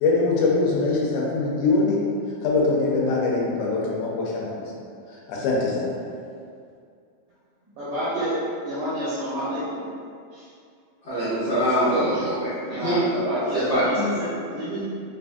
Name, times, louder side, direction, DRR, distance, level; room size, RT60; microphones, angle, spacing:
voice 1, 0.0-2.1 2.4-4.6 5.3-5.9, left 3 dB, 80° left, -3 dB, 2.0 m, -22 dB
voice 2, 7.7-8.3 8.6-9.8 10.3-10.5 12.7-14.8, equal, 80° right, -11 dB, 1.5 m, -29 dB
voice 3, 11.0-13.0 13.5-14.2, right 1 dB, 65° left, -16 dB, 1.0 m, -24 dB
4.6 x 2.5 x 2.3 m, 2.3 s
omnidirectional pair, 3.5 m